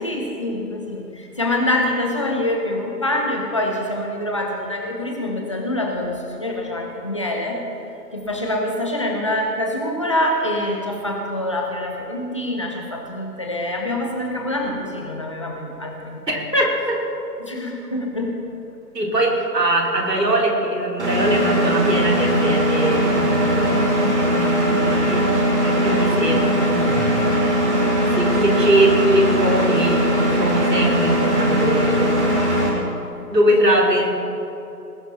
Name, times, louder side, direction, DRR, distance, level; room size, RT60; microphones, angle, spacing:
voice 1, 0.0-7.6 8.1-16.4 17.4-18.4 25.0-25.4, left 1 dB, 20° left, 1 dB, 0.9 m, -25 dB
voice 2, 16.5-17.0 18.9-23.8 24.3-25.3 25.6-27.2 28.0-32.2 33.3-34.1, right 1 dB, 75° right, -1 dB, 3.2 m, -21 dB
Engine, 21.0-32.7, equal, 45° right, 2.7 m, -19 dB
19.5 x 10.5 x 4.2 m, 2.9 s
figure-of-eight pair, 150°, 49 cm